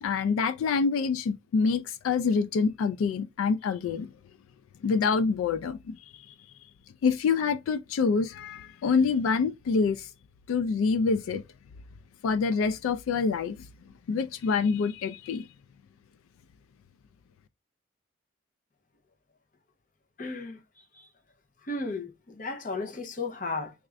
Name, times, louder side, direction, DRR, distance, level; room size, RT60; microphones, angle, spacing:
voice 1, 0.0-4.1 4.8-5.9 6.3-6.4 7.0-10.1 10.5-11.4 12.2-13.6 14.1-15.5, left 5 dB, 90° left, 0.3 m, -26 dB
voice 2, 20.2-20.6 21.7-23.7, left 3 dB, 40° left, 0.6 m, -34 dB
3.5 x 2.4 x 3.1 m
head